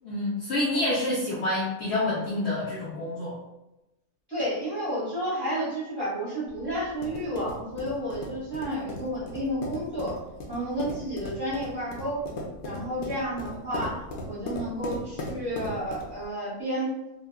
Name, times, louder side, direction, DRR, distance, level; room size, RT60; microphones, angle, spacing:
voice 1, 0.0-3.4, left 1 dB, 60° left, -7 dB, 0.8 m, -28 dB
voice 2, 4.3-10.2 10.5-12.2 12.6-16.9, equal, 20° right, -10 dB, 1.0 m, -31 dB
sound 1, 6.5-16.2, left 1 dB, 75° left, 0.5 m, -38 dB
2.9 x 2.3 x 2.2 m, 0.96 s
omnidirectional pair, 1.5 m